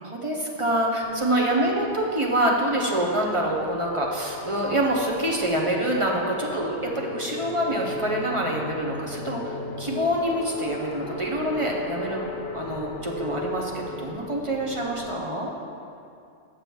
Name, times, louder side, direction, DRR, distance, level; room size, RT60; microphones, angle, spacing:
voice 1, 0.0-15.5, right 1 dB, 35° right, -1 dB, 0.6 m, -26 dB
sound 1, 1.0-15.2, left 2 dB, 65° left, 0.9 m, -38 dB
6.7 x 6.1 x 4.6 m, 2.5 s
omnidirectional pair, 1.2 m